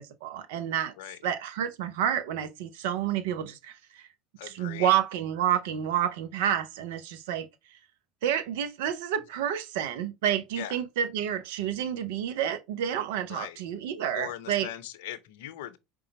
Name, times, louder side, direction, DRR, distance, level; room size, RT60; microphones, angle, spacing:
voice 1, 0.0-0.9 1.2-4.1 4.4-7.5 8.2-14.7, right 10 dB, 65° right, 0.6 m, -29 dB
voice 2, 4.4-5.0 10.6-10.8 13.3-13.6 14.1-15.8, left 12 dB, 65° left, 0.6 m, -40 dB
4.9 x 2.3 x 4.0 m
figure-of-eight pair, 75°, 0 cm